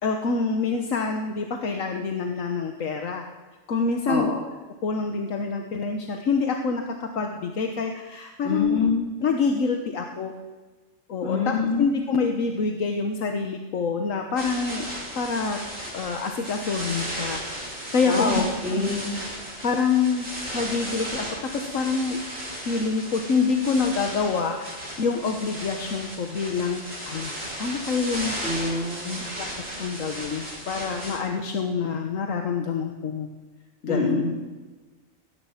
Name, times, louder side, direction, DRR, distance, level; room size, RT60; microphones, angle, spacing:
voice 1, 0.0-3.3 3.7-4.3 4.8-8.9 9.2-10.3 11.1-14.8 15.1-15.6 15.9-17.4 17.7-18.4 18.7-19.0 19.6-20.3 20.5-21.3 21.5-22.2 22.7-28.7 29.4-29.5 29.8-33.3 33.8-34.1, left 5 dB, 75° left, 4 dB, 1.5 m, -26 dB
voice 2, 4.1-4.4 8.4-9.0 11.2-11.9 18.1-19.2 28.4-29.2 33.9-34.4, left 4 dB, 50° left, 1 dB, 2.8 m, -25 dB
sound 1, 14.4-31.2, equal, 75° right, 6.2 m, -35 dB
16.5 x 14.5 x 5.8 m, 1.3 s
omnidirectional pair, 1.4 m